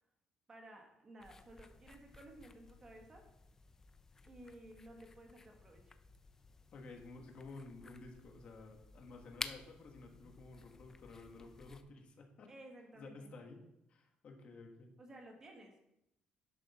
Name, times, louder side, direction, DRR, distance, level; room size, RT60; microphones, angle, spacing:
voice 1, 0.5-3.2 4.2-5.8 12.5-13.3 15.0-15.9, right 1 dB, 20° right, 2 dB, 1.5 m, -55 dB
sound 1, 1.2-11.8, left 3 dB, 15° left, 0.4 m, -53 dB
voice 2, 6.7-12.5 12.9-14.9, left 3 dB, 40° left, 3 dB, 1.5 m, -53 dB
11.0 x 7.7 x 4.2 m, 0.84 s
cardioid pair, 180°, 3 cm